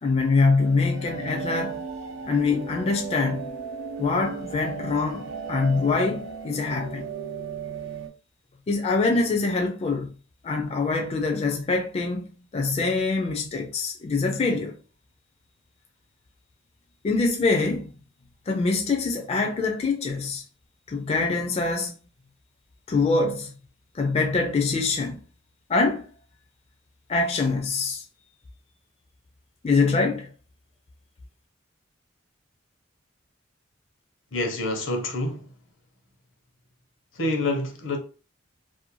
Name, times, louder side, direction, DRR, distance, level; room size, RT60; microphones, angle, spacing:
voice 1, 0.0-1.8 2.3-3.5 4.0-7.1 8.7-10.1 10.4-12.3 12.5-14.8 17.0-17.9 18.5-20.4 20.9-21.9 22.9-23.5 23.9-25.2 25.7-26.0 27.1-28.0 29.6-30.3, left 3 dB, 30° left, 0.4 m, -24 dB
sound 1, 0.6-8.1, right 5 dB, 80° right, 0.4 m, -36 dB
voice 2, 34.3-35.4 37.1-38.0, left 2 dB, 85° left, 0.8 m, -27 dB
2.5 x 2.2 x 2.9 m
head